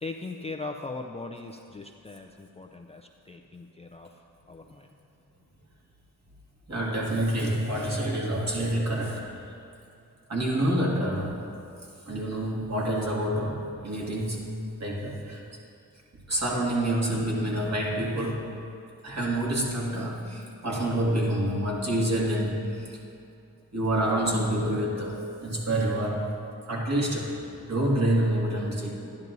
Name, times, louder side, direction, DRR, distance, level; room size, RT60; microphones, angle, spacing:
voice 1, 0.0-4.9, left 3 dB, 20° left, 3 dB, 0.4 m, -40 dB
voice 2, 6.7-9.3 10.3-11.4 12.1-14.5 14.8-15.4 16.3-18.5 19.0-23.0 23.7-26.4 26.7-29.0, right 1 dB, 45° right, -4 dB, 2.3 m, -27 dB
11.5 x 10.5 x 2.7 m, 2.5 s
cardioid pair, 70°, 37 cm